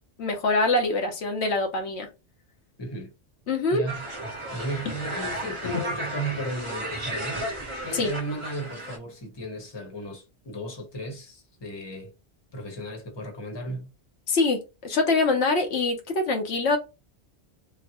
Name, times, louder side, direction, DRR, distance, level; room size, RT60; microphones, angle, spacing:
voice 1, 0.2-2.1 3.5-3.8 7.9-8.1 14.3-16.8, left 3 dB, 80° left, 1.0 m, -24 dB
voice 2, 2.8-3.1 3.7-4.0 4.5-12.1 12.5-13.9, right 1 dB, 25° left, 0.9 m, -35 dB
sound 1, 3.9-9.0, right 1 dB, 30° right, 0.9 m, -34 dB
3.8 x 2.0 x 2.8 m
omnidirectional pair, 1.1 m